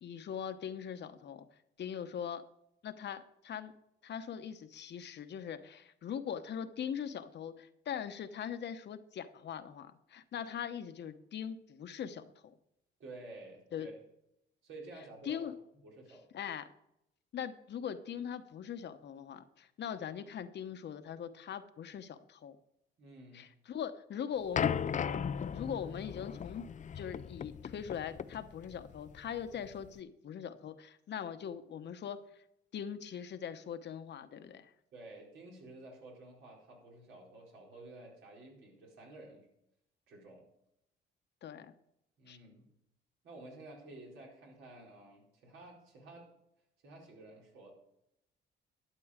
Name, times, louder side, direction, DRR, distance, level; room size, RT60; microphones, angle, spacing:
voice 1, 0.0-1.5 1.8-2.4 2.8-3.7 4.0-12.5 13.7-13.9 15.2-15.5 16.3-16.7 17.3-22.6 23.3-24.7 25.5-26.6 26.9-32.2 32.7-34.7 41.4-41.7 42.3-42.4, left 8 dB, 60° left, 10 dB, 1.0 m, -41 dB
voice 2, 13.0-13.9 14.6-16.3 23.0-23.4 34.9-39.5 40.1-40.5 42.2-42.7 43.2-46.3 46.8-47.7, right 2 dB, 80° right, -2 dB, 4.5 m, -52 dB
sound 1, 24.6-30.0, left 7 dB, 40° left, 0.5 m, -37 dB
12.0 x 8.6 x 5.0 m, 0.80 s
cardioid pair, 90°, 20 cm